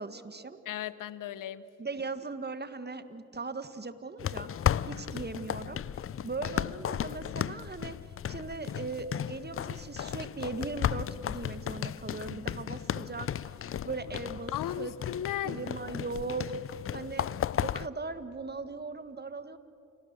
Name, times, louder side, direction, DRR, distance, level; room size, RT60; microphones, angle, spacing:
voice 1, 0.0-0.6 1.8-4.5 4.8-8.0 8.3-13.3 13.8-14.9 15.4-16.6 16.9-17.3 17.6-19.6, right 3 dB, 30° right, 12 dB, 1.5 m, -39 dB
voice 2, 0.7-1.7 14.5-15.6, left 11 dB, 80° left, 17 dB, 0.7 m, -35 dB
sound 1, 4.2-17.9, left 9 dB, 45° left, 0.5 m, -35 dB
29.0 x 18.0 x 6.7 m, 2.8 s
supercardioid pair, 45°, 32 cm